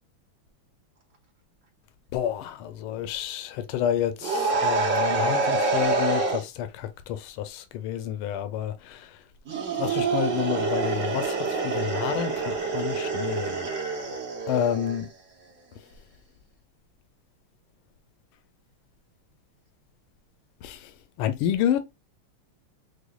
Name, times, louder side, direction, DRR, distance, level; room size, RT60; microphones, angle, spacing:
voice 1, 2.1-9.0 9.8-13.7 14.5-15.0 20.6-20.8 21.2-21.8, left 10 dB, 80° left, 1.4 m, -29 dB
sound 1, 4.2-6.4 9.5-15.0, right 3 dB, 60° right, 0.8 m, -26 dB
4.9 x 2.2 x 2.2 m
omnidirectional pair, 2.4 m